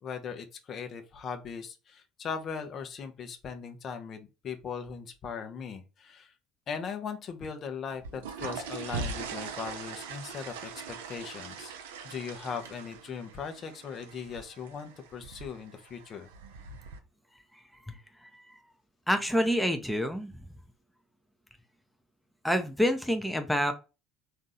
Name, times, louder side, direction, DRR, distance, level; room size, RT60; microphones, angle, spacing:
voice 1, 0.0-6.3 6.7-10.7 11.1-11.7 12.0-16.3, left 6 dB, 45° left, 7 dB, 0.8 m, -39 dB
sound 1, 7.9-17.0, right 5 dB, 75° right, 0.6 m, -41 dB
voice 2, 17.9-18.3 19.1-20.4 22.4-23.7, equal, ahead, 6 dB, 0.7 m, -28 dB
3.6 x 2.7 x 3.9 m, 0.29 s
figure-of-eight pair, 60°, 0 cm